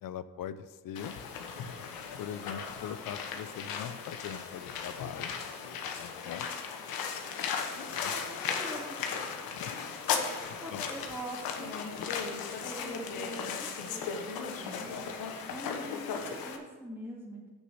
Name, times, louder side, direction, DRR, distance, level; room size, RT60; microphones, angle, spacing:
voice 1, 0.0-1.1 2.2-5.3 5.8-6.5 7.9-8.1 9.5-9.8 10.5-10.9 15.5-15.6, left 9 dB, 70° left, 14 dB, 0.7 m, -41 dB
sound 1, 1.0-16.6, left 6 dB, 85° left, 1.2 m, -36 dB
voice 2, 8.0-9.4 10.2-11.8 12.6-15.1 15.5-17.5, equal, 5° right, -6 dB, 2.2 m, -44 dB
8.4 x 6.7 x 6.3 m, 1.3 s
cardioid pair, 75°, 35 cm